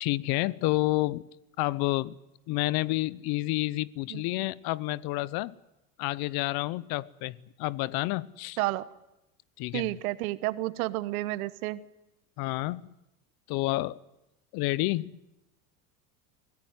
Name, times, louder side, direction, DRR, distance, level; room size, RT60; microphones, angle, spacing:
voice 1, 0.0-1.2 1.6-2.2 2.5-5.6 6.0-8.6 9.6-9.9 12.4-12.9 13.5-14.0 14.5-15.2, left 19 dB, 55° left, 0.8 m, -29 dB
voice 2, 9.7-11.8, right 18 dB, 70° right, 1.3 m, -30 dB
23.5 x 16.5 x 9.6 m
hypercardioid pair, 95°, 44 cm